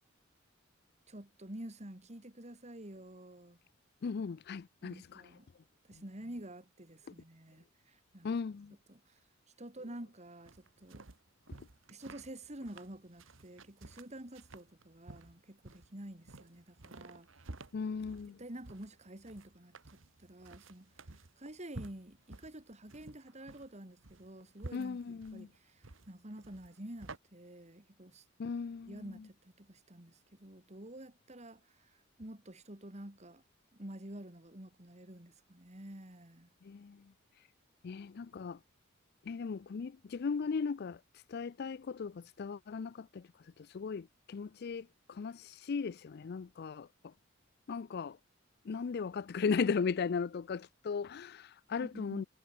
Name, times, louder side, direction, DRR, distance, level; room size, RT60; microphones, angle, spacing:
voice 1, 1.1-3.6 4.8-5.5 5.8-8.3 8.9-9.2 9.6-11.0 11.9-17.3 18.3-20.9 21.4-28.2 28.9-33.4 33.7-36.5 51.8-52.3, right 1 dB, 35° right, 3.1 m, -49 dB
voice 2, 4.0-5.3 5.9-6.0 8.2-8.7 11.5-11.7 17.7-18.4 24.7-25.5 28.4-29.2 36.6-37.1 37.8-38.6 39.2-41.0 41.3-47.1 47.7-48.2 48.6-52.2, left 5 dB, 55° left, 0.4 m, -37 dB
sound 1, 10.5-27.2, right 2 dB, 70° right, 1.6 m, -52 dB
head